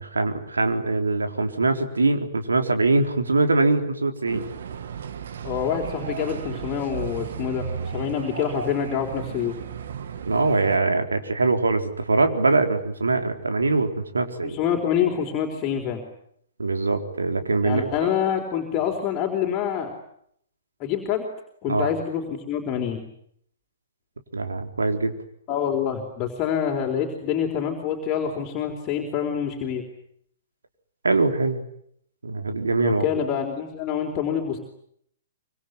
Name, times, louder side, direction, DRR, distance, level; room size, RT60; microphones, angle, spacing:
voice 1, 0.0-4.4 10.3-14.6 16.6-17.8 21.7-21.9 24.3-25.1 31.0-31.6 32.2-33.0, right 3 dB, 75° right, 6 dB, 4.0 m, -23 dB
sound 1, 4.3-10.8, right 7 dB, 60° right, 2.2 m, -34 dB
voice 2, 5.4-9.6 14.4-16.0 17.6-19.9 20.8-21.3 21.6-23.0 25.5-29.9 32.8-34.6, left 8 dB, 30° left, 1 dB, 4.0 m, -26 dB
25.5 x 25.0 x 9.4 m, 0.71 s
figure-of-eight pair, 115°, 0 cm